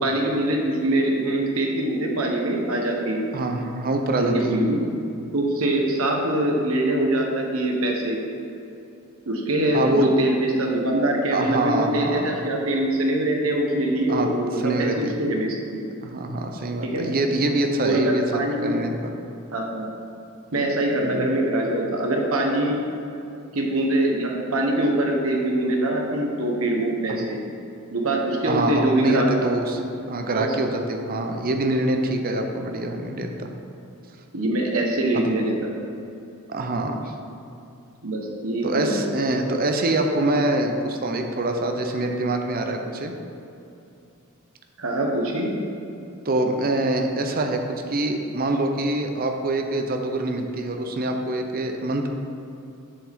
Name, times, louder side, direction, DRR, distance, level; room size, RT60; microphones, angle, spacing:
voice 1, 0.0-3.3 4.1-4.8 5.3-8.2 9.3-15.8 16.8-17.1 17.8-18.8 19.5-19.9 20.5-22.8 23.5-27.4 27.9-29.5 30.3-30.5 34.3-35.5 38.0-38.9 44.8-45.5, right 1 dB, 80° right, 0 dB, 1.1 m, -23 dB
voice 2, 3.3-4.6 9.7-10.1 11.3-12.4 14.1-14.3 14.6-15.2 16.0-18.2 18.6-19.0 21.0-21.3 28.4-29.8 30.1-33.5 35.1-35.2 36.5-37.1 38.6-43.1 46.2-47.6 47.9-52.1, right 2 dB, 45° right, 4 dB, 0.6 m, -25 dB
7.5 x 7.0 x 3.6 m, 2.7 s
head